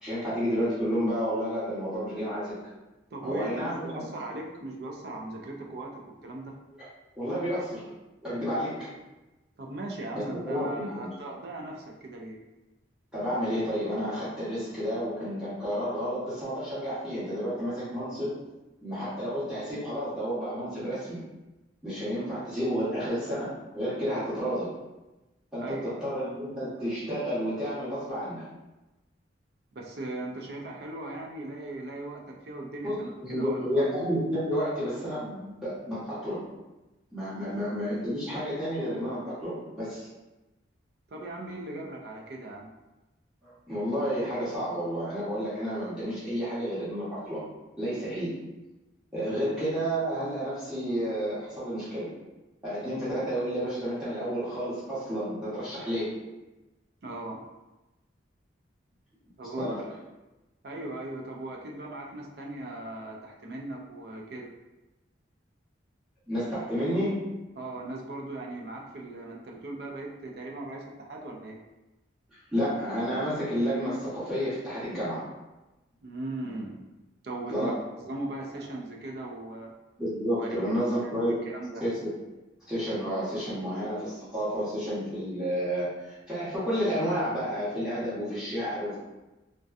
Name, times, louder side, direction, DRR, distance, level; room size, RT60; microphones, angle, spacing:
voice 1, 0.0-2.6 3.2-4.1 7.2-7.9 8.2-8.9 10.1-11.1 13.1-18.3 18.8-21.2 21.8-24.7 25.5-28.4 32.8-36.4 37.1-40.1 43.4-47.4 47.8-48.3 49.1-52.2 52.6-56.2 59.6-59.8 66.3-67.3 72.5-75.2 77.5-77.8 80.0-81.4 81.8-82.1 82.7-89.0, equal, 5° right, -13 dB, 0.8 m, -31 dB
voice 2, 3.1-3.5 3.8-6.6 9.6-12.4 25.6-26.1 29.7-33.8 37.4-37.6 41.1-42.7 49.3-49.4 57.0-57.5 59.4-59.7 60.6-64.5 67.6-71.6 76.0-76.8 77.2-77.8 78.1-79.7 80.4-80.6 80.9-81.9, right 2 dB, 55° right, 0 dB, 0.4 m, -38 dB
2.6 x 2.1 x 2.3 m, 1.0 s
head